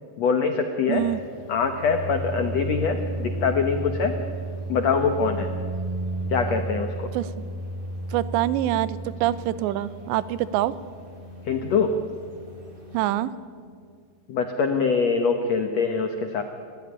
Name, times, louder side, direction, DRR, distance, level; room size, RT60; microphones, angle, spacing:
voice 1, 0.2-1.1 1.5-4.2 4.7-5.5 6.3-7.1 11.4-11.9 14.3-16.4, left 5 dB, 85° left, 6 dB, 1.4 m, -24 dB
sound 1, 0.9-13.3, right 2 dB, 20° right, 4.3 m, -34 dB
voice 2, 0.9-1.2 7.1-7.3 8.1-10.8 12.9-13.4, right 13 dB, 90° right, 16 dB, 3.0 m, -25 dB
29.5 x 15.0 x 10.0 m, 2.2 s
omnidirectional pair, 4.9 m